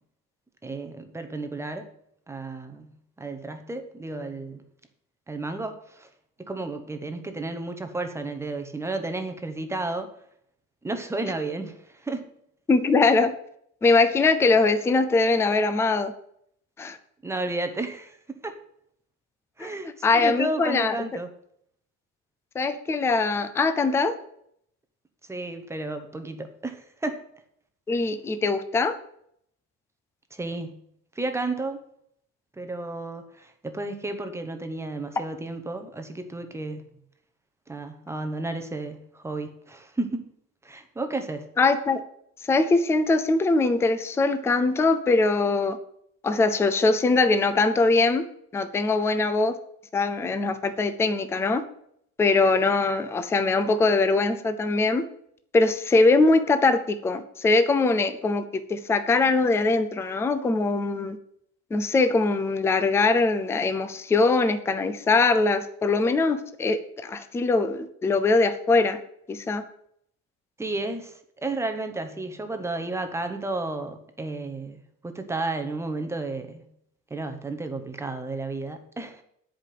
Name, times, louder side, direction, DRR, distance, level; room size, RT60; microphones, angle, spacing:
voice 1, 0.6-1.9 2.3-2.9 3.2-4.6 5.3-6.1 6.4-10.1 10.8-12.2 17.2-18.5 19.6-21.3 25.3-27.2 30.3-30.8 31.2-31.8 32.6-36.8 37.7-40.3 40.6-41.5 70.6-76.6 77.1-79.2, right 2 dB, 10° right, 7 dB, 0.8 m, -32 dB
voice 2, 12.7-13.3 13.8-16.1 16.8-17.0 19.6-19.7 20.0-21.0 22.5-24.2 27.9-29.0 41.6-42.0 42.4-45.8 46.2-48.2 48.5-49.6 49.9-51.6 52.2-55.0 55.5-61.2 61.7-69.0 69.3-69.6, left 3 dB, 5° left, 10 dB, 0.4 m, -22 dB
10.5 x 5.1 x 7.5 m, 0.70 s
cardioid pair, 165°, 35 cm